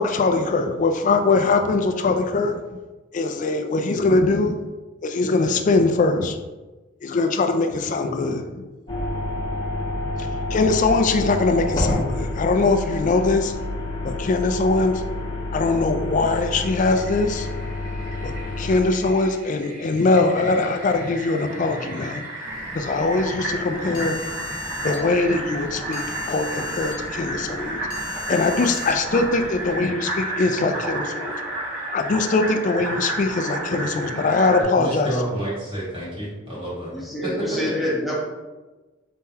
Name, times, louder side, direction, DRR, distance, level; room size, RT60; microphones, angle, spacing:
voice 1, 0.0-2.6 3.1-4.5 5.0-6.4 7.0-8.4 10.2-13.5 14.0-15.0 15.5-17.5 18.2-22.2 22.7-24.2 24.8-27.8 28.3-31.3 31.9-35.1, left 3 dB, 40° left, 6 dB, 0.3 m, -22 dB
sound 1, 8.9-18.8, left 2 dB, 25° left, 0.8 m, -28 dB
Fill (with liquid), 16.6-34.6, right 1 dB, 70° right, 1.4 m, -32 dB
sound 2, 22.5-29.8, left 2 dB, 65° left, 0.8 m, -38 dB
voice 2, 34.6-36.9 37.2-37.6, right 1 dB, 25° right, -8 dB, 1.4 m, -29 dB
voice 3, 36.9-38.2, left 1 dB, ahead, -5 dB, 1.0 m, -27 dB
4.2 x 3.7 x 2.8 m, 1.2 s
head